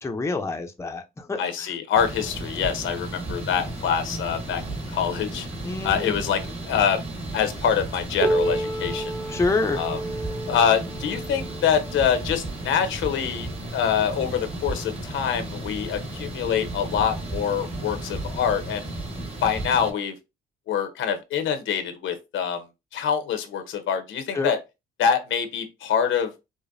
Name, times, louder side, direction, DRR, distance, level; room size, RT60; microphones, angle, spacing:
voice 1, 0.0-1.7 5.6-6.2 9.3-9.8 24.3-24.5, left 3 dB, 15° left, 0.6 m, -27 dB
voice 2, 1.4-4.6 4.9-5.5 5.8-7.0 7.3-9.1 9.7-10.0 10.5-18.9 19.4-20.1 20.7-22.6 22.9-24.6 25.0-26.3, left 8 dB, 75° left, 0.9 m, -25 dB
sound 1, 1.9-19.9, right 2 dB, 30° right, 1.4 m, -34 dB
Piano, 8.2-13.5 14.4-14.5 15.0-15.1 15.9-16.0 17.0-17.1, right 2 dB, 75° right, 1.6 m, -30 dB
4.9 x 2.1 x 2.6 m
cardioid pair, 90°, 20 cm